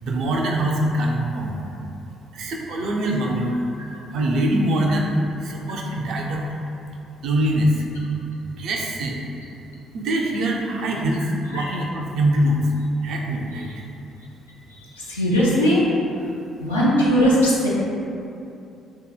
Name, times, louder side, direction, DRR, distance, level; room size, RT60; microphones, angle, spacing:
voice 1, 0.0-1.6 2.3-3.6 4.1-6.4 7.2-7.8 8.6-9.2 9.9-12.7 13.0-13.7, right 1 dB, 60° right, 0 dB, 0.4 m, -23 dB
voice 2, 14.9-15.8 16.6-17.7, equal, 85° left, -8 dB, 0.5 m, -19 dB
3.4 x 2.8 x 2.2 m, 2.7 s
figure-of-eight pair, 45°, 0 cm